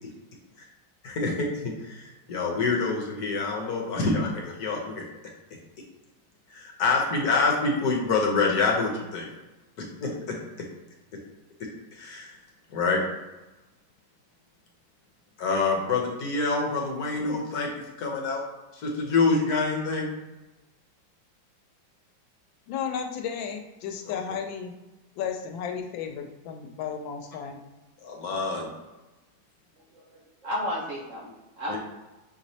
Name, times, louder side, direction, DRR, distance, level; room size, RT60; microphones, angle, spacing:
voice 1, 1.0-5.0 6.5-9.3 9.8-10.4 12.0-12.3 12.7-13.0 15.4-17.7 18.0-18.4 18.7-20.1 24.1-24.2 28.0-28.7 31.7-31.8, left 3 dB, 60° left, -1 dB, 1.2 m, -26 dB
voice 2, 22.7-24.7 25.2-27.6, left 7 dB, 85° left, 5 dB, 1.3 m, -33 dB
voice 3, 29.8-31.8, left 1 dB, 55° right, -4 dB, 1.0 m, -34 dB
5.7 x 3.0 x 2.7 m, 1.1 s
omnidirectional pair, 2.0 m